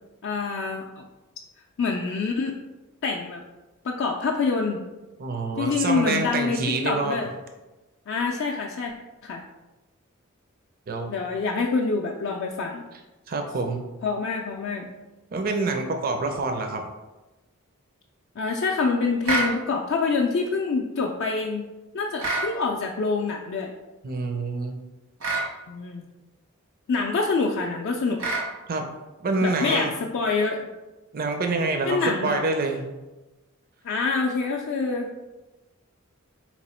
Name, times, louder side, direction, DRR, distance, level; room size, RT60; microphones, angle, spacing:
voice 1, 0.2-0.9 1.8-2.5 3.0-3.4 3.8-4.8 5.6-7.3 8.1-8.9 9.2-9.4 11.1-12.8 14.0-14.9 18.4-21.7 21.9-23.7 25.7-26.0 26.9-28.2 29.4-30.7 31.9-32.4 33.8-35.1, left 4 dB, 55° left, 0 dB, 0.4 m, -26 dB
voice 2, 5.2-7.2 10.9-11.1 13.3-13.8 15.3-16.9 24.0-24.8 28.7-28.9 29.2-29.9 31.1-32.9, right 3 dB, 45° right, 4 dB, 0.5 m, -26 dB
sound 1, 19.2-19.5 22.2-22.5 25.2-25.5 28.2-28.5, right 3 dB, 85° right, 1.2 m, -25 dB
4.1 x 3.0 x 4.2 m, 1.1 s
head